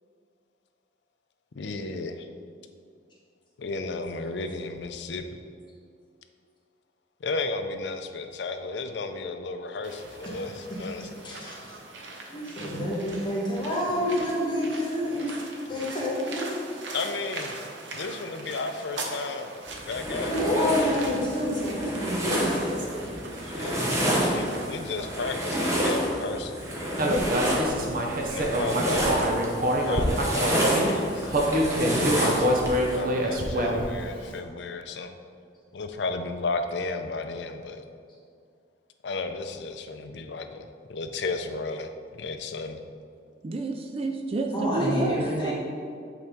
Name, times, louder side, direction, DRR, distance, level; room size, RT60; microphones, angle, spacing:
voice 1, 1.5-2.3 3.6-5.4 7.2-11.1 16.9-17.6 17.9-19.5 19.9-20.3 23.5-23.9 24.3-26.6 28.3-29.4 29.8-31.4 31.9-32.6 32.9-35.2 35.7-37.8 39.0-42.8, left 3 dB, 70° left, 7 dB, 0.5 m, -33 dB
sound 1, 9.8-25.4, right 2 dB, 90° right, 0.8 m, -41 dB
voice 2, 11.2-11.8 12.3-15.4 15.7-16.5 20.2-22.8 44.5-45.5, left 1 dB, 25° left, -7 dB, 1.6 m, -28 dB
sound 2, 19.7-33.0, right 1 dB, 15° right, 1.0 m, -29 dB
Human voice, 27.0-30.9 31.3-34.0, equal, 50° right, 0.7 m, -25 dB
voice 3, 43.4-45.5, right 2 dB, 30° right, 3 dB, 0.3 m, -29 dB
8.3 x 4.0 x 3.5 m, 2.3 s
head